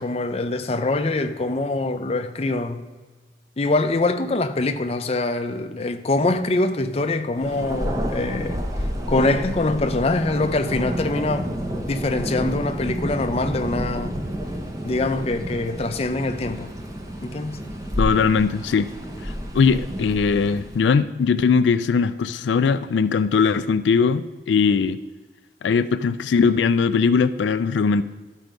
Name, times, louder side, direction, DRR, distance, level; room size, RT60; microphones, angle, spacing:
voice 1, 0.0-2.9 3.6-8.6 9.1-11.5 11.9-14.2 14.8-16.7 17.2-17.6, left 2 dB, 35° left, 0.5 m, -24 dB
Thunder, 7.3-21.0, equal, 20° right, 0.8 m, -30 dB
voice 2, 18.0-18.9 19.2-25.0 25.6-28.0, left 5 dB, 85° left, 0.4 m, -20 dB
13.0 x 4.6 x 5.1 m
head